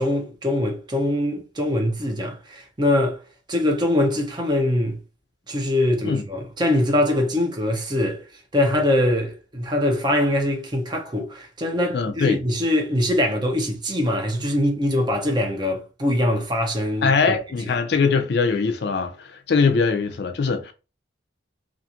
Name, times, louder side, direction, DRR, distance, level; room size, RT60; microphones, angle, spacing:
voice 1, 0.0-3.2 3.5-5.0 5.5-8.2 8.5-17.4, left 1 dB, 25° right, 0.6 m, -23 dB
voice 2, 11.9-12.4 17.0-20.7, left 4 dB, 60° left, 0.4 m, -21 dB
2.5 x 2.4 x 2.8 m
head